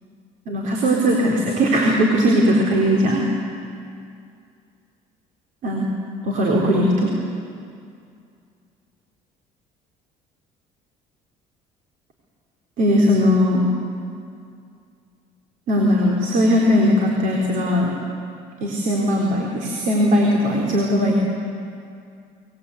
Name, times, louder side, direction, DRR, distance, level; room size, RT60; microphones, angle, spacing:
voice 1, 0.5-3.2 5.6-5.9 6.2-7.1 12.8-13.6 15.7-17.9 18.6-21.2, equal, 65° right, -1 dB, 3.9 m, -19 dB
25.5 x 20.5 x 8.5 m, 2.4 s
cardioid pair, 120°, 15 cm